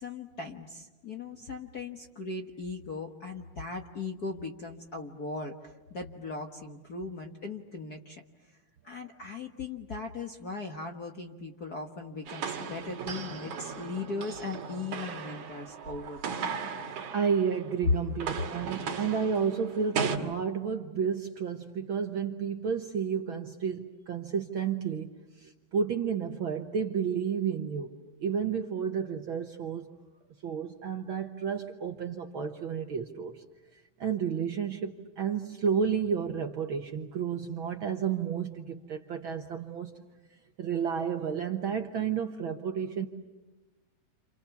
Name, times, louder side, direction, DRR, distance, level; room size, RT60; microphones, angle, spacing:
voice 1, 0.0-8.2 8.8-16.5, left 3 dB, 45° left, 3 dB, 1.3 m, -39 dB
sound 1, 12.3-17.7 18.0-20.2, right 6 dB, 75° right, 3.3 m, -36 dB
voice 2, 17.1-29.9 30.4-33.4 34.0-39.9 40.6-43.1, right 7 dB, 60° right, 5 dB, 1.5 m, -31 dB
29.5 x 28.0 x 7.1 m, 1.2 s
omnidirectional pair, 3.4 m